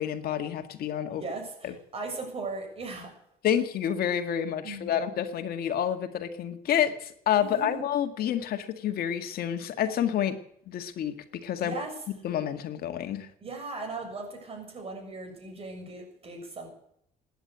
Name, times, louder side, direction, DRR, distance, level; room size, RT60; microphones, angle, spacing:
voice 1, 0.0-1.2 1.6-1.7 3.4-10.4 10.7-11.8 12.2-13.3, left 9 dB, 65° left, 7 dB, 1.9 m, -29 dB
voice 2, 1.1-3.1 4.6-5.0 7.4-7.9 11.6-12.0 13.4-16.7, right 3 dB, 35° right, 2 dB, 7.1 m, -38 dB
17.0 x 10.0 x 8.1 m, 0.69 s
cardioid pair, 110°, 17 cm